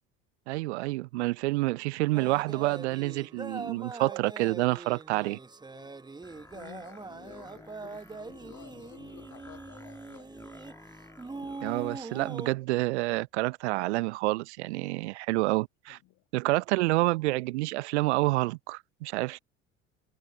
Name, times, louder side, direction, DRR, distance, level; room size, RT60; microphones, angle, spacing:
voice 1, 0.5-5.4 11.6-16.0 16.3-19.4, right 21 dB, 65° right, 0.9 m, -28 dB
sound 1, 2.1-12.5, right 3 dB, 10° right, 1.0 m, -42 dB
voice 2, 5.7-6.0 6.3-10.4 15.0-15.5 15.9-16.2, left 18 dB, 50° left, 2.1 m, -53 dB
sound 2, 6.2-12.0, left 2 dB, 10° left, 2.6 m, -52 dB
figure-of-eight pair, 65°, 37 cm